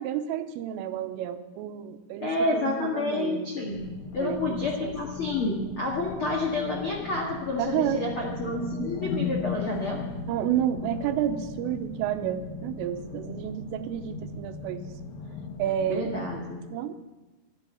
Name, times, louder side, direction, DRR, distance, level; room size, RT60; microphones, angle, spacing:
voice 1, 0.0-3.5 4.2-5.0 7.6-8.0 10.3-14.9 15.6-16.1 16.7-16.9, right 10 dB, 90° right, 8 dB, 3.4 m, -30 dB
voice 2, 2.2-3.8 4.1-10.0 15.9-16.6, left 2 dB, 85° left, -2 dB, 1.1 m, -29 dB
sound 1, 3.7-16.3, left 4 dB, 55° left, 2.1 m, -37 dB
12.5 x 12.0 x 6.9 m, 1.1 s
omnidirectional pair, 5.7 m